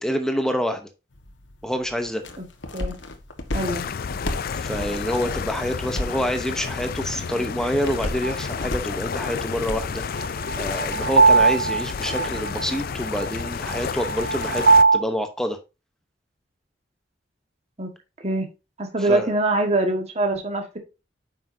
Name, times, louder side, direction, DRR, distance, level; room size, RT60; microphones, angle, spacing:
voice 1, 0.0-0.9 1.6-2.2 4.5-14.6 14.9-15.6 19.0-19.3, equal, 5° left, 0.8 m, -27 dB
sound 1, 1.1-11.6, left 1 dB, 85° left, 1.4 m, -36 dB
sound 2, 3.5-14.8, left 6 dB, 55° left, 0.4 m, -31 dB
voice 2, 3.5-3.9 17.8-17.9 18.2-18.5 18.8-20.8, right 2 dB, 35° right, 1.5 m, -24 dB
sound 3, 8.2-8.3 10.2-15.0, right 4 dB, 75° right, 1.7 m, -20 dB
9.2 x 5.9 x 2.7 m
head